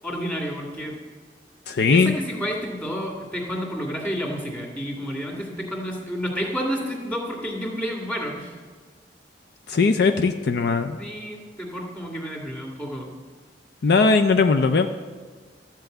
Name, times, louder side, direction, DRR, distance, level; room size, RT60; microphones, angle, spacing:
voice 1, 0.0-1.0 1.7-8.6 11.0-13.1, equal, 10° left, -2 dB, 2.0 m, -30 dB
voice 2, 1.7-2.1 9.7-11.0 13.8-14.9, left 4 dB, 65° left, 7 dB, 0.5 m, -19 dB
12.5 x 4.5 x 7.8 m, 1.5 s
head